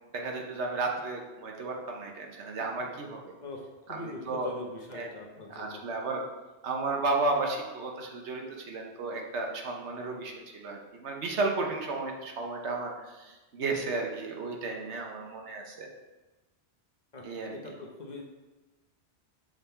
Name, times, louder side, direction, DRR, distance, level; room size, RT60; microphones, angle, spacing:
voice 1, 0.1-3.3 3.9-4.5 4.9-5.1 5.5-6.2 6.6-15.9 17.2-17.5, right 3 dB, 85° right, 1 dB, 1.2 m, -33 dB
voice 2, 3.9-5.8 17.1-18.2, left 2 dB, 45° left, 0 dB, 0.9 m, -42 dB
6.4 x 3.7 x 4.4 m, 1.1 s
omnidirectional pair, 1.1 m